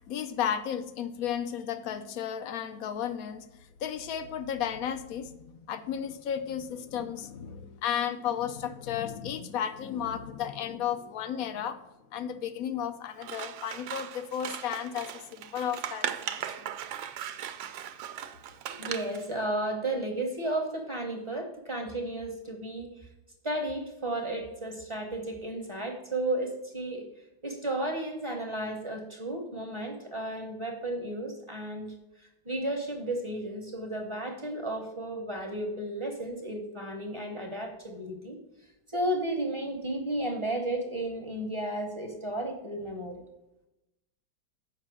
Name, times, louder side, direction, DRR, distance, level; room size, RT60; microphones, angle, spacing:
voice 1, 0.0-3.5 3.8-11.8 12.1-16.7, left 9 dB, 65° left, 10 dB, 0.9 m, -33 dB
Scissors, 13.2-19.3, right 10 dB, 75° right, 1.3 m, -38 dB
voice 2, 18.7-22.9 23.4-27.1 27.4-38.4 38.9-43.2, right 1 dB, 25° right, 2 dB, 0.7 m, -33 dB
7.4 x 5.4 x 6.2 m, 0.96 s
omnidirectional pair, 2.1 m